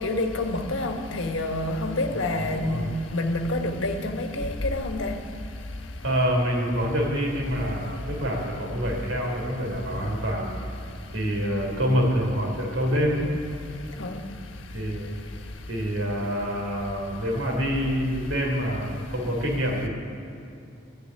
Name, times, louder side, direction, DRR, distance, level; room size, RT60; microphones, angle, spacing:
voice 1, 0.0-2.8 3.1-5.2 14.0-14.2, left 2 dB, 70° left, 5 dB, 1.4 m, -27 dB
voice 2, 2.1-2.9 6.0-10.6 11.1-13.3 14.7-15.1 15.7-19.9, equal, 90° right, 0 dB, 3.7 m, -26 dB
13.0 x 10.0 x 9.5 m, 2.7 s
head